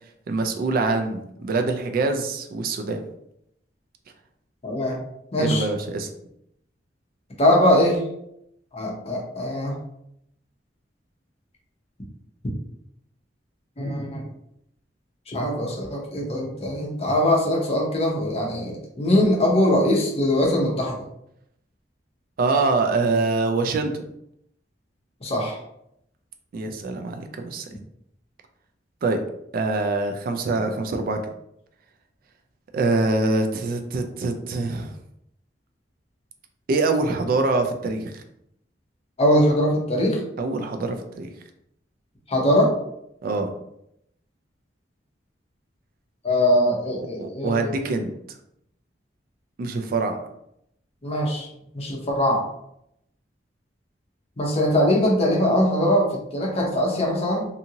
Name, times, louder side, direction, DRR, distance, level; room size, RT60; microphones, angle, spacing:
voice 1, 0.3-3.0 5.3-6.1 22.4-23.9 26.5-27.7 29.0-29.2 29.5-31.2 32.7-34.9 36.7-38.2 40.4-41.3 43.2-43.5 47.2-48.1 49.6-50.2, right 3 dB, 55° right, 6 dB, 0.3 m, -24 dB
voice 2, 4.6-5.0 5.3-5.7 7.4-8.0 8.7-9.8 13.8-14.2 15.3-20.9 25.2-25.6 39.2-40.2 42.3-42.7 46.2-47.9 51.0-51.5 51.7-52.4 54.4-57.5, left 1 dB, 35° left, -2 dB, 0.7 m, -21 dB
2.7 x 2.5 x 2.7 m, 0.77 s
head